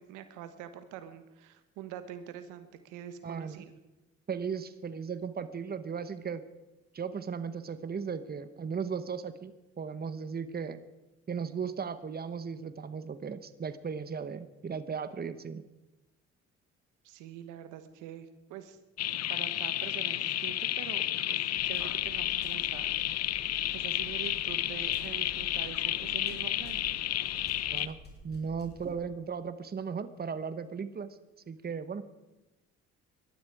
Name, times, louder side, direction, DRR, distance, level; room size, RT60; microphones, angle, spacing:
voice 1, 0.0-3.7 17.0-18.8 19.3-22.9 23.2-26.8, right 10 dB, 85° right, 10 dB, 1.4 m, -45 dB
voice 2, 3.2-3.6 4.3-6.4 6.9-10.8 11.3-15.6 27.7-28.0 28.2-31.2 31.5-32.2, right 6 dB, 30° right, 12 dB, 1.1 m, -36 dB
sound 1, 19.0-27.9, left 12 dB, 55° left, 0.7 m, -31 dB
sound 2, 21.6-28.9, equal, 35° left, 5.2 m, -52 dB
20.5 x 12.5 x 4.9 m, 1.1 s
supercardioid pair, 80°, 30 cm